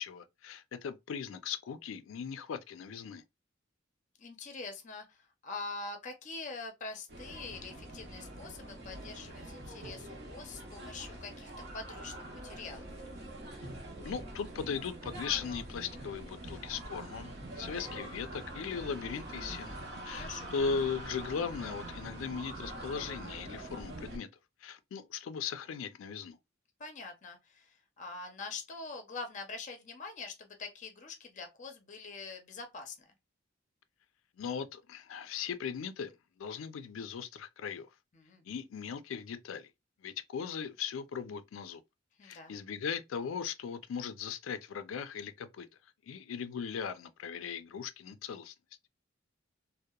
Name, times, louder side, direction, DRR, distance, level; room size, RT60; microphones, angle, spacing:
voice 1, 0.0-3.2 14.0-19.8 20.0-24.3 24.6-26.4 34.4-37.9 38.4-39.7 40.0-41.8 42.2-45.7 46.1-48.5, left 6 dB, 90° left, 0.4 m, -38 dB
voice 2, 4.2-12.1 12.4-12.9 20.1-20.5 26.8-33.0 38.1-38.4 42.2-42.6, left 3 dB, 40° left, 0.5 m, -44 dB
sound 1, 7.1-24.2, right 1 dB, 55° right, 0.7 m, -44 dB
2.8 x 2.0 x 2.2 m
head